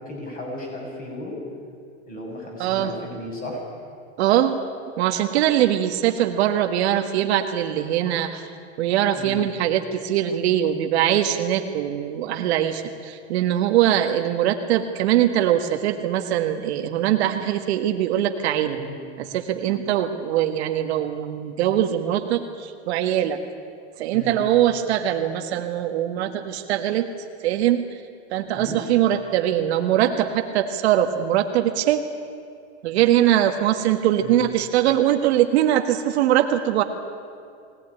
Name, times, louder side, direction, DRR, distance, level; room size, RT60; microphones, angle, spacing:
voice 1, 0.0-1.4 2.1-3.6 9.1-9.4 18.7-19.0 24.1-24.4 28.5-28.8 34.2-34.4, left 1 dB, 20° left, -1 dB, 7.1 m, -35 dB
voice 2, 2.6-2.9 4.2-4.6 5.0-8.5 8.8-18.8 19.2-23.4 24.0-27.1 27.4-27.9 28.3-32.0 32.8-36.8, right 11 dB, 60° right, 6 dB, 1.5 m, -22 dB
22.5 x 18.0 x 9.9 m, 2.3 s
supercardioid pair, 150°, 37 cm